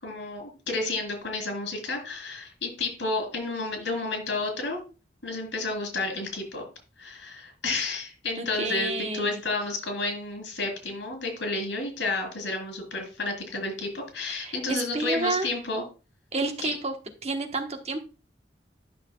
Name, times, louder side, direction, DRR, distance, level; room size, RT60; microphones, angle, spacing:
voice 1, 0.0-4.8 5.2-6.6 7.0-15.8 16.6-16.7, left 3 dB, 85° left, 3 dB, 3.7 m, -31 dB
voice 2, 8.4-9.4 14.3-15.5 16.3-16.9 17.2-18.0, right 3 dB, 35° right, 4 dB, 1.1 m, -30 dB
11.5 x 6.2 x 2.3 m, 0.32 s
head